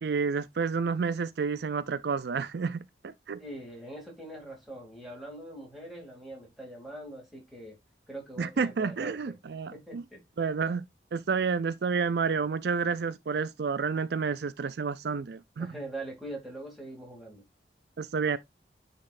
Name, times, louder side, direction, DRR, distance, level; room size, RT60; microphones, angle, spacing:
voice 1, 0.0-3.4 8.4-10.0 10.4-10.8 11.1-15.7 18.0-18.4, right 5 dB, 70° right, 0.4 m, -30 dB
voice 2, 3.4-7.7 8.1-9.3 9.7-10.2 15.6-17.4, right 1 dB, ahead, 2.7 m, -43 dB
9.5 x 4.1 x 2.5 m
head